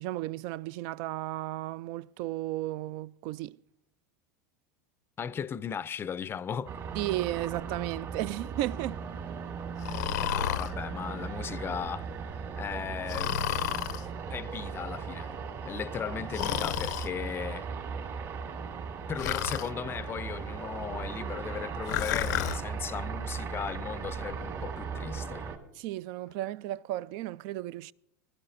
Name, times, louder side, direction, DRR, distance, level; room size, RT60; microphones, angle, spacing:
voice 1, 0.0-3.6 6.9-9.0 25.7-27.9, right 16 dB, 55° right, 0.4 m, -34 dB
voice 2, 5.2-6.7 10.2-12.1 12.6-13.6 14.3-15.3 15.6-17.7 19.1-25.5, left 7 dB, 25° left, 0.5 m, -37 dB
sound 1, 6.7-25.6, right 6 dB, 40° right, 2.3 m, -37 dB
Breathing, 9.8-10.7 13.1-14.0 16.3-17.1 19.2-19.7 21.9-22.6, left 13 dB, 75° left, 0.6 m, -31 dB
20.5 x 12.0 x 2.6 m
hypercardioid pair, 100°, 9 cm